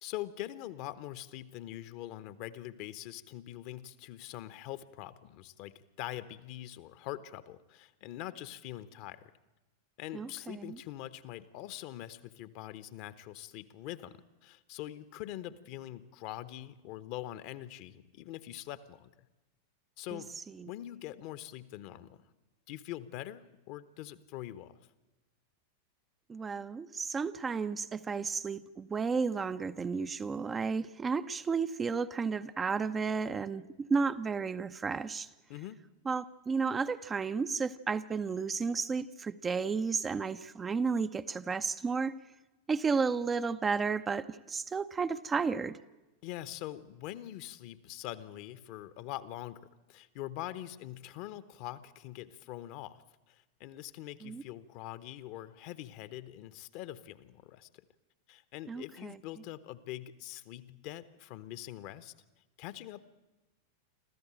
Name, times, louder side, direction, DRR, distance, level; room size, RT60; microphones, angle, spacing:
voice 1, 0.0-9.3 10.0-19.1 20.0-20.3 20.6-22.2 22.7-24.8 35.5-35.8 46.2-57.7 58.3-62.1 62.6-63.0, left 14 dB, 45° left, 14 dB, 1.1 m, -43 dB
voice 2, 10.1-10.8 20.1-20.2 20.6-20.7 26.3-35.3 36.1-42.1 42.7-45.8 54.2-54.4 58.7-59.2, right 5 dB, 20° right, 10 dB, 0.7 m, -33 dB
26.0 x 14.5 x 8.8 m, 1.1 s
figure-of-eight pair, 90°, 0 cm